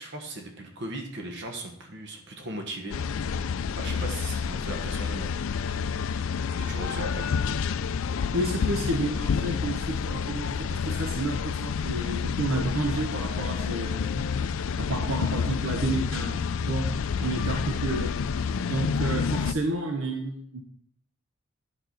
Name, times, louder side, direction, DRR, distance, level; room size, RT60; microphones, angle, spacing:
voice 1, 0.0-2.9 3.7-5.4 6.6-7.7, right 1 dB, 55° right, 3 dB, 1.3 m, -38 dB
sound 1, 2.9-19.5, left 6 dB, 70° left, 0.4 m, -29 dB
voice 2, 8.3-14.2 14.8-16.4 16.7-16.9 17.2-18.2 18.7-20.6, right 2 dB, 75° right, 2 dB, 1.1 m, -30 dB
9.0 x 6.1 x 4.0 m, 0.66 s
head